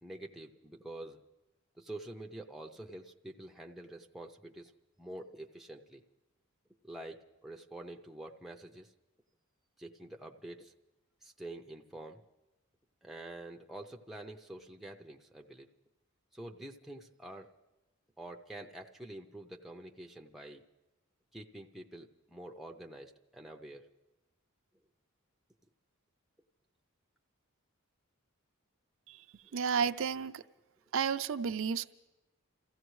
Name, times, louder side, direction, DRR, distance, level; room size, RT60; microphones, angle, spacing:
voice 1, 0.0-1.2 1.8-4.7 5.0-6.0 6.8-8.9 9.8-10.7 11.2-12.2 13.0-15.7 16.3-17.5 18.2-20.6 21.3-23.9 29.5-29.6, right 1 dB, ahead, 1 dB, 0.5 m, -47 dB
voice 2, 29.5-30.4 30.9-31.9, right 6 dB, 60° right, 11 dB, 0.4 m, -32 dB
28.0 x 15.0 x 3.1 m, 1.0 s
head